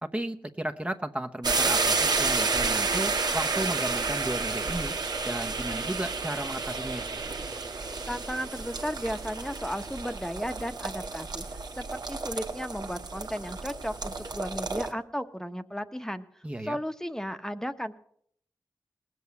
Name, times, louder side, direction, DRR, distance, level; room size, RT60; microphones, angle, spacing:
voice 1, 0.0-5.0 5.2-7.0 16.4-16.8, right 1 dB, 20° right, 5 dB, 0.9 m, -34 dB
sound 1, 1.4-14.9, right 4 dB, 80° right, 1.6 m, -30 dB
voice 2, 8.1-16.3 16.6-18.0, equal, 5° left, 9 dB, 1.1 m, -35 dB
19.0 x 7.8 x 8.3 m, 0.65 s
cardioid pair, 55°, 7 cm